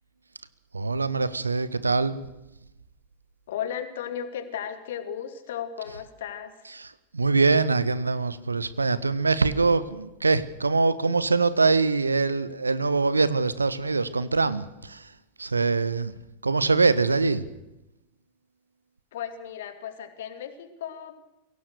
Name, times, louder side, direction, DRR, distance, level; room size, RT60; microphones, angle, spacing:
voice 1, 0.7-2.2 6.7-15.1 15.4-16.1 16.4-17.4, right 4 dB, 80° right, 16 dB, 1.1 m, -23 dB
voice 2, 3.5-6.5 19.1-21.2, left 9 dB, 55° left, 9 dB, 2.6 m, -35 dB
23.5 x 17.0 x 6.7 m, 0.96 s
figure-of-eight pair, 90°, 0 cm